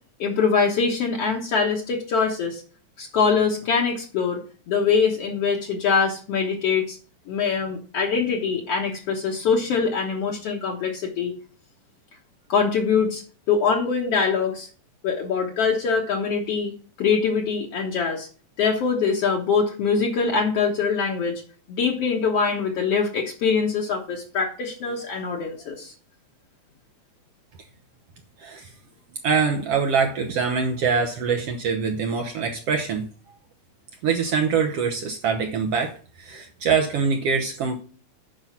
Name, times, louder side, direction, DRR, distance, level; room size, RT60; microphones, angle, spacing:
voice 1, 0.2-2.6 3.0-4.4 4.7-7.0 7.3-11.3 12.5-13.2 13.5-14.7 15.0-16.7 17.0-18.3 18.6-21.4 21.7-25.9, left 5 dB, 60° left, 0 dB, 2.0 m, -23 dB
voice 2, 29.2-33.1 34.0-35.9 36.2-37.8, right 5 dB, 65° right, 3 dB, 1.7 m, -24 dB
9.1 x 5.6 x 5.7 m, 0.39 s
omnidirectional pair, 3.5 m